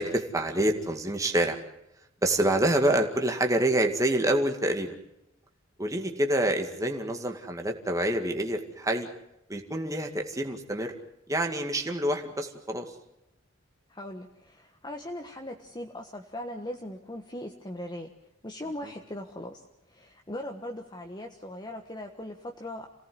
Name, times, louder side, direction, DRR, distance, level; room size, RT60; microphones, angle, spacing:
voice 1, 0.0-1.6 2.2-5.0 5.8-9.1 9.5-10.9 11.3-12.9, right 1 dB, 15° right, 3 dB, 2.1 m, -27 dB
voice 2, 13.9-18.1 18.4-22.9, left 1 dB, 20° left, 3 dB, 1.4 m, -39 dB
28.0 x 18.0 x 7.9 m, 0.85 s
head